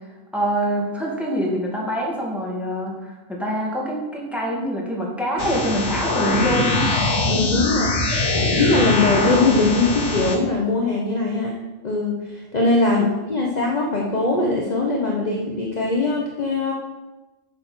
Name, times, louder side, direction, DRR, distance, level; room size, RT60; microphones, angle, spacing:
voice 1, 0.3-6.9 12.8-13.1, equal, ahead, -3 dB, 2.3 m, -25 dB
sound 1, 5.4-10.4, left 2 dB, 65° left, 1.4 m, -22 dB
voice 2, 7.3-16.7, left 3 dB, 35° left, -1 dB, 1.1 m, -21 dB
8.9 x 6.6 x 5.7 m, 1.1 s
omnidirectional pair, 1.3 m